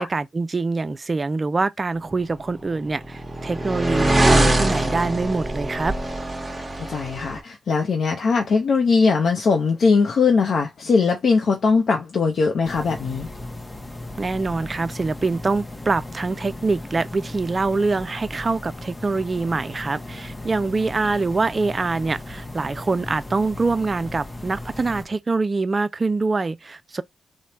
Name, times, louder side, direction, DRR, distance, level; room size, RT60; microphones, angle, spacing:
voice 1, 0.0-5.9 14.2-27.0, right 3 dB, 35° right, 0.3 m, -24 dB
sound 1, 2.4-7.4, right 1 dB, 20° right, 1.0 m, -22 dB
voice 2, 6.8-13.3, left 4 dB, 65° left, 0.6 m, -20 dB
sound 2, 12.6-25.1, left 2 dB, 20° left, 0.7 m, -37 dB
3.1 x 2.1 x 2.8 m
supercardioid pair, 55°, 0 cm